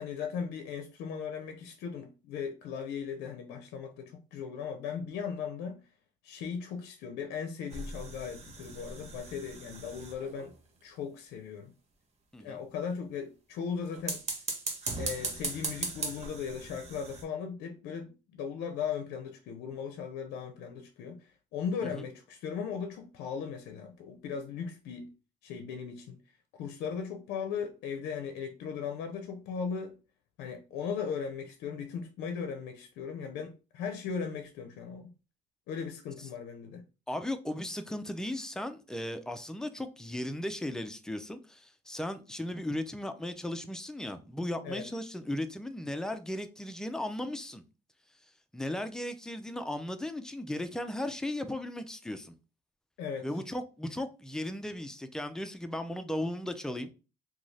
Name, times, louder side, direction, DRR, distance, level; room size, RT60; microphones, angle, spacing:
voice 1, 0.0-5.8 6.2-10.5 10.8-11.7 12.4-14.2 15.0-25.1 25.4-26.2 26.6-30.0 30.4-35.1 35.7-36.8 44.6-44.9 53.0-53.3, left 6 dB, 80° left, 0.5 m, -37 dB
sound 1, 7.7-10.5 13.9-17.2, right 3 dB, 40° right, 0.8 m, -38 dB
voice 2, 37.1-47.6 48.5-52.3 53.2-56.9, left 1 dB, 5° left, 0.3 m, -36 dB
2.5 x 2.3 x 3.2 m
cardioid pair, 110°, 17 cm